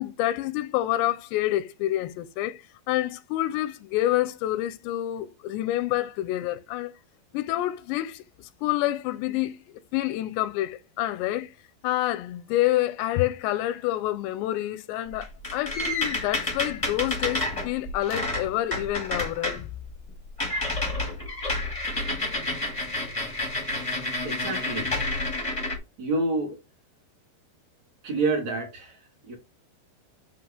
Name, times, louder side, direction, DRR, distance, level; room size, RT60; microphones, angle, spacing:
voice 1, 0.0-6.9 7.3-11.5 11.8-19.7, left 14 dB, 85° left, 2.7 m, -28 dB
sound 1, 15.1-19.6 19.9-20.1 20.4-25.8, left 2 dB, 30° left, 0.5 m, -29 dB
voice 2, 24.2-25.4 26.0-26.6 28.0-29.4, right 3 dB, 50° right, 2.5 m, -29 dB
9.7 x 3.5 x 3.6 m
omnidirectional pair, 4.9 m